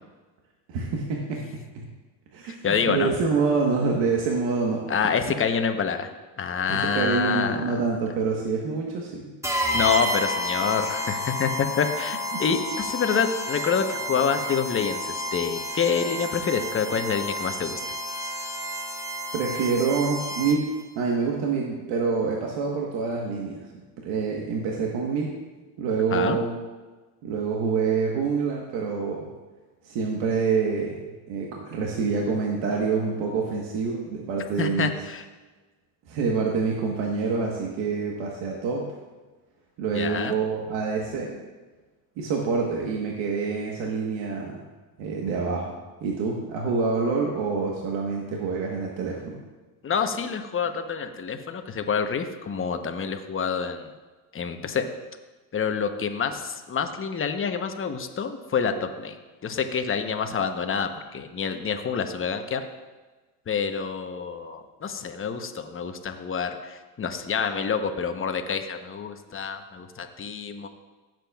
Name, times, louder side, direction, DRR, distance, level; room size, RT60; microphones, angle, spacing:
voice 1, 0.7-1.4 1.7-1.9 2.3-4.8 6.7-9.3 12.3-12.4 19.3-20.7 20.9-23.6 24.0-25.3 25.8-26.6 27.2-29.3 29.8-31.0 31.3-34.9 36.1-38.9 39.8-41.4 42.2-44.6 45.0-45.7 46.0-49.4, right 5 dB, 75° right, -1 dB, 1.4 m, -26 dB
voice 2, 2.5-3.1 4.9-6.1 6.4-7.8 9.7-17.8 26.1-26.4 34.6-35.2 39.9-40.4 49.8-53.9 54.3-54.9 55.5-59.2 59.4-62.6 63.5-70.7, left 6 dB, 30° left, 7 dB, 0.9 m, -27 dB
sound 1, 9.4-20.8, left 1 dB, 5° right, 1.2 m, -31 dB
15.5 x 7.6 x 2.4 m, 1.3 s
supercardioid pair, 90°, 44 cm